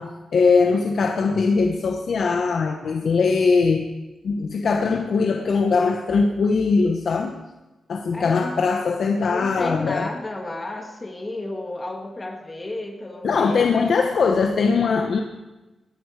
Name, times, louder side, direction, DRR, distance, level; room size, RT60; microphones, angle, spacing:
voice 1, 0.0-3.9 4.2-7.4 7.9-10.1 13.2-15.2, left 4 dB, 65° left, 4 dB, 1.0 m, -21 dB
voice 2, 8.1-8.5 9.2-13.9, left 2 dB, 25° left, 3 dB, 1.8 m, -32 dB
19.0 x 11.5 x 4.8 m, 1.1 s
cardioid pair, 90°, 0 cm